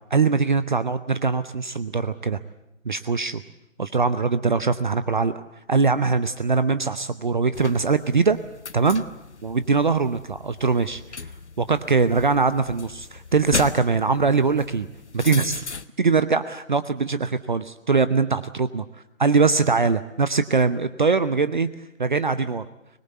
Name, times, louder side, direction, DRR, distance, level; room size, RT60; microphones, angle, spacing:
voice 1, 0.0-2.4 2.8-3.4 3.8-5.4 5.7-8.4 8.7-9.0 9.4-11.0 11.6-14.9 15.1-15.6 16.0-18.8 19.2-21.7 22.0-22.6, right 4 dB, 40° right, 13 dB, 0.9 m, -22 dB
sound 1, 7.5-15.9, left 4 dB, 60° left, 1.1 m, -37 dB
24.0 x 21.0 x 8.3 m, 0.83 s
figure-of-eight pair, 145°, 38 cm